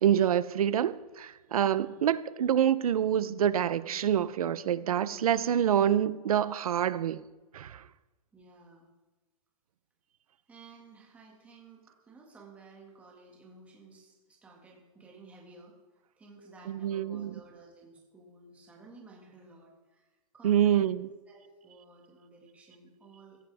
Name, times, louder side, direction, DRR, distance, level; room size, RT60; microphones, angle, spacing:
voice 1, 0.0-7.2 7.5-7.8 16.7-17.3 20.4-21.1, right 9 dB, 70° right, 16 dB, 0.7 m, -26 dB
sound 1, 3.0-7.2, left 4 dB, 50° left, 4.1 m, -55 dB
voice 2, 8.3-8.9 10.5-15.8 16.2-20.9 21.3-23.4, right 3 dB, 5° right, -1 dB, 1.9 m, -54 dB
15.5 x 15.5 x 3.5 m, 1.2 s
hypercardioid pair, 175°, 19 cm